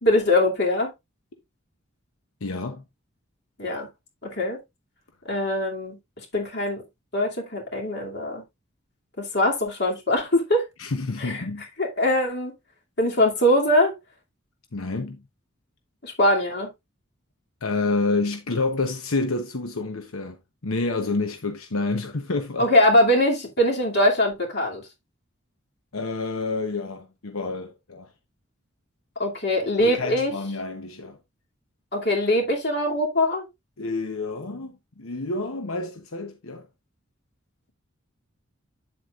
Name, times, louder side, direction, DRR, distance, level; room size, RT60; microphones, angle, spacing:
voice 1, 0.0-0.9 3.6-3.9 4.2-4.6 5.2-6.0 6.3-6.8 7.1-8.4 9.2-10.6 11.2-11.4 11.8-12.5 13.0-13.9 16.0-16.7 22.6-24.8 29.2-30.3 31.9-33.4, left 1 dB, 50° left, 2.6 m, -22 dB
voice 2, 2.4-2.8 10.8-11.7 14.7-15.2 17.6-22.7 25.9-28.1 29.8-31.2 33.8-36.7, left 3 dB, 85° left, 0.9 m, -28 dB
8.8 x 7.8 x 2.5 m
head